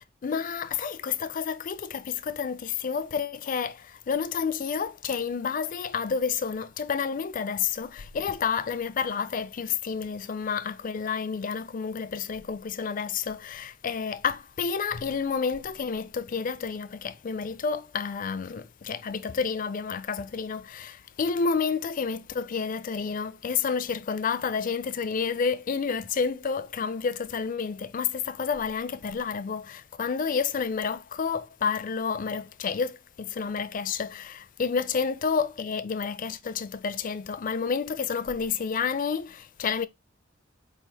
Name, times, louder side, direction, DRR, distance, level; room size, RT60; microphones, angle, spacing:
voice 1, 0.2-3.7 4.1-39.9, left 6 dB, 45° left, 0.4 m, -30 dB
4.6 x 2.4 x 3.4 m
head